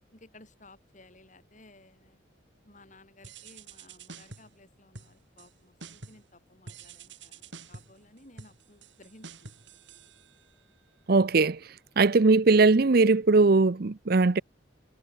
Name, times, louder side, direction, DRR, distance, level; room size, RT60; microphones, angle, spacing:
voice 1, 0.1-2.2 2.6-9.5, left 2 dB, 40° left, 6.1 m, -56 dB
sound 1, 3.2-4.6 4.9-5.5 5.8-6.3 6.7-10.7, right 4 dB, 70° right, 4.4 m, -48 dB
voice 2, 11.1-11.6 12.0-14.4, right 3 dB, 50° right, 0.6 m, -20 dB
head